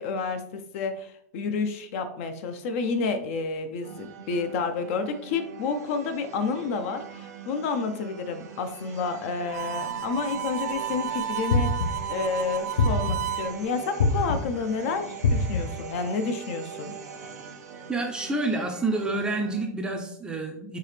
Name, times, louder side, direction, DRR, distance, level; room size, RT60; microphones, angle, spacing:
voice 1, 0.0-16.9, left 4 dB, 50° left, 8 dB, 0.6 m, -30 dB
sound 1, 3.8-19.7, right 6 dB, 80° right, 0.8 m, -43 dB
Harmonica, 9.5-13.5, right 9 dB, 60° right, 0.5 m, -32 dB
sound 2, 11.5-12.1 12.8-13.4 14.0-14.6 15.2-15.9, left 3 dB, 90° left, 0.7 m, -24 dB
voice 2, 17.9-20.8, right 2 dB, 10° right, 3 dB, 0.5 m, -28 dB
4.7 x 2.8 x 3.2 m, 0.69 s
supercardioid pair, 150°, 9 cm